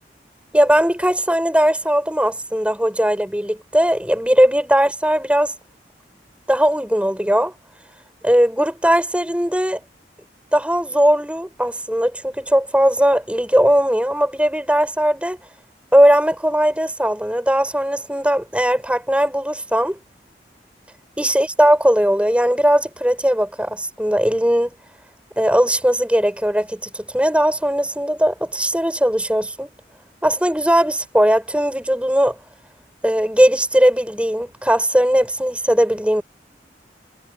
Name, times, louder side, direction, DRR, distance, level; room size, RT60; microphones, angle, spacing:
voice 1, 0.5-5.5 6.5-7.5 8.2-9.8 10.5-15.4 15.9-20.0 21.2-24.7 25.4-29.7 30.2-32.4 33.0-36.2, equal, 5° right, 6.7 m, -18 dB
head